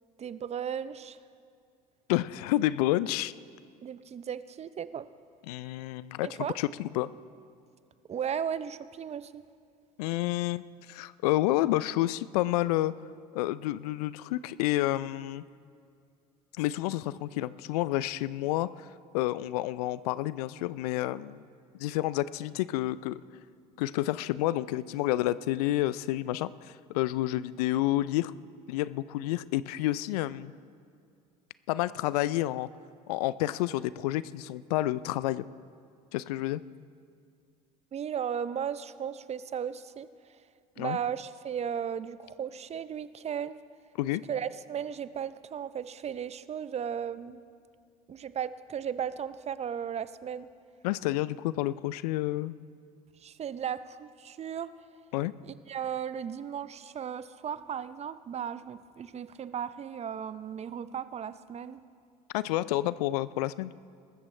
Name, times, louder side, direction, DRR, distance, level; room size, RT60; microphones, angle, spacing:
voice 1, 0.2-1.2 3.8-5.1 6.2-6.6 8.1-9.4 37.9-40.1 40.8-43.6 44.3-47.4 48.1-50.5 53.2-54.7 55.4-61.8, right 8 dB, 35° right, 15 dB, 0.6 m, -35 dB
voice 2, 2.1-3.3 5.5-6.3 6.6-7.1 10.0-12.9 13.3-15.4 16.6-18.9 19.1-21.4 21.8-23.2 23.8-28.3 28.7-30.5 31.7-32.7 33.1-35.5 36.1-36.6 40.8-41.0 44.0-44.2 50.8-52.5 55.1-55.3 62.3-63.7, left 16 dB, 75° left, 18 dB, 0.4 m, -29 dB
21.5 x 13.5 x 3.3 m, 2.3 s
hypercardioid pair, 65°, 20 cm